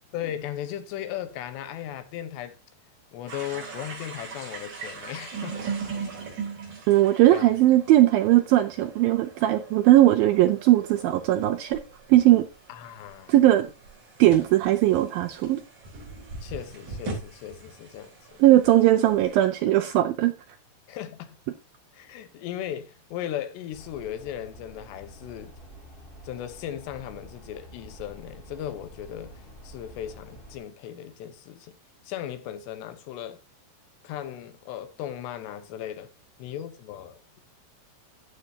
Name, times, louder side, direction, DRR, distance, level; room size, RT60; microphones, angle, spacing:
voice 1, 0.1-2.6 3.1-5.6 7.3-7.5 12.7-13.3 16.4-18.4 20.9-21.4 21.9-25.5 26.2-31.8 32.0-33.4 34.0-36.1 36.4-37.4, left 11 dB, 80° left, 3.2 m, -37 dB
sound 1, 3.3-19.4, right 4 dB, 45° right, 5.4 m, -40 dB
voice 2, 6.9-11.8 12.1-12.5 13.3-13.7 14.2-15.6 18.4-20.3, right 14 dB, 80° right, 2.1 m, -19 dB
sound 2, 23.7-30.6, equal, 15° left, 2.0 m, -48 dB
14.0 x 7.8 x 2.8 m
omnidirectional pair, 4.9 m